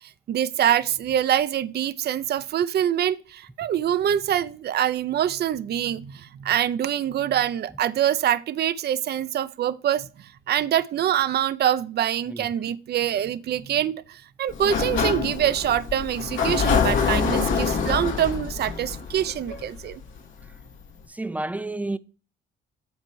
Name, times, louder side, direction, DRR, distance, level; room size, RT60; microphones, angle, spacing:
voice 1, 0.0-20.0, right 10 dB, 55° right, 0.5 m, -25 dB
Sliding door, 14.5-20.2, left 5 dB, 75° left, 1.8 m, -25 dB
voice 2, 21.2-22.0, right 2 dB, 5° right, 0.4 m, -29 dB
8.1 x 4.4 x 4.5 m
cardioid pair, 90°, 20 cm